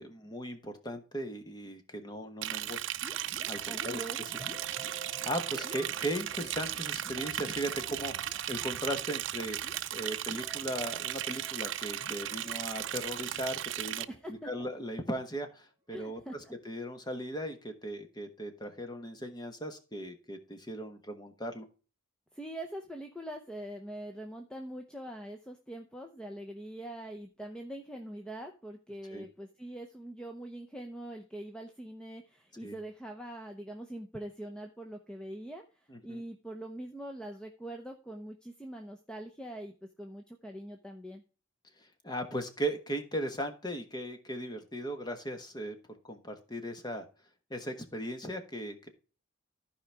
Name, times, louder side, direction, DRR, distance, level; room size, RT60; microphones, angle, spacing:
voice 1, 0.0-2.8 3.5-4.0 4.8-9.6 9.9-14.1 14.4-21.6 29.1-29.2 32.6-32.8 35.9-36.2 41.8-45.7 46.0-47.0 47.5-48.9, right 1 dB, 20° left, 6 dB, 1.2 m, -38 dB
Liquid, 2.4-14.0, right 12 dB, 65° right, 0.5 m, -36 dB
sound 1, 3.0-14.7, right 1 dB, 15° right, 2.1 m, -51 dB
voice 2, 3.6-4.2 14.1-14.7 15.9-16.5 22.3-41.2, right 1 dB, 5° left, 3 dB, 0.7 m, -43 dB
14.5 x 5.0 x 3.4 m, 0.35 s
head